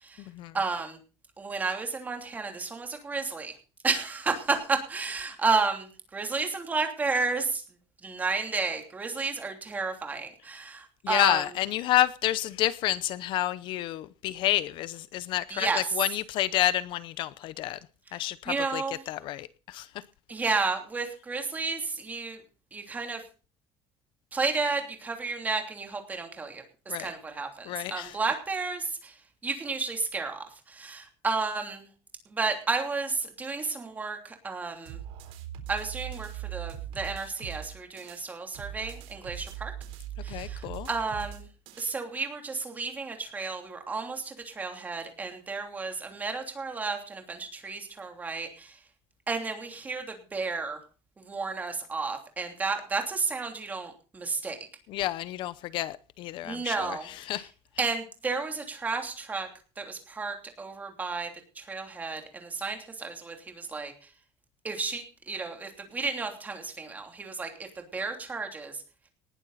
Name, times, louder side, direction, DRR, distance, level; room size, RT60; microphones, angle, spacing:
voice 1, 0.5-1.0 1.4-3.5 3.8-7.6 8.0-11.4 15.5-15.8 18.5-19.0 20.3-22.4 22.7-23.2 24.3-29.2 29.4-31.9 32.3-35.0 35.7-39.7 40.2-41.4 41.8-48.8 49.3-50.8 51.2-54.6 56.4-57.1 57.8-59.5 59.8-61.3 61.5-63.9 64.6-68.8, right 4 dB, 15° right, 3.0 m, -32 dB
voice 2, 11.0-17.8 18.1-19.9 20.4-20.5 26.9-27.1 27.7-28.2 40.3-40.9 54.9-57.0 57.2-57.5, left 14 dB, 50° left, 0.7 m, -29 dB
sound 1, 34.9-38.2 38.5-41.9, right 11 dB, 70° right, 3.9 m, -40 dB
19.5 x 11.5 x 4.1 m
cardioid pair, 180°, 10 cm